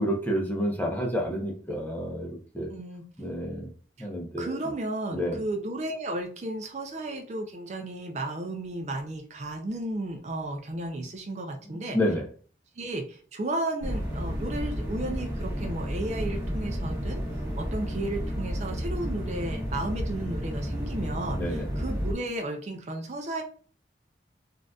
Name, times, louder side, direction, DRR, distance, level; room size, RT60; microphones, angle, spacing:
voice 1, 0.0-2.3 2.5-2.7 3.2-3.7 4.0-4.6 5.1-5.4 11.7-12.2 21.4-21.7, equal, 10° left, 0 dB, 0.7 m, -29 dB
voice 2, 2.7-3.0 4.0-4.1 4.4-12.0 12.8-23.4, right 1 dB, 40° right, 3 dB, 0.4 m, -34 dB
sound 1, 13.8-22.1, equal, 10° right, 1.1 m, -31 dB
3.7 x 2.5 x 2.3 m, 0.42 s
head